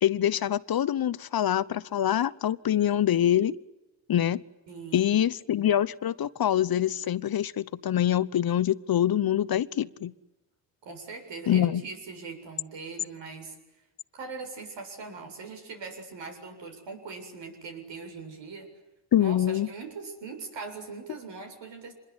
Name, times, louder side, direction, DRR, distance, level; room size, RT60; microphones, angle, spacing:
voice 1, 0.0-3.6 4.1-4.4 4.9-10.1 11.5-11.8 19.1-19.7, left 11 dB, 50° left, 17 dB, 1.0 m, -25 dB
voice 2, 4.7-5.3 10.8-13.6 14.1-18.7 19.2-21.9, right 4 dB, 75° right, 4 dB, 7.6 m, -41 dB
26.0 x 22.0 x 9.9 m, 0.99 s
cardioid pair, 80°, 44 cm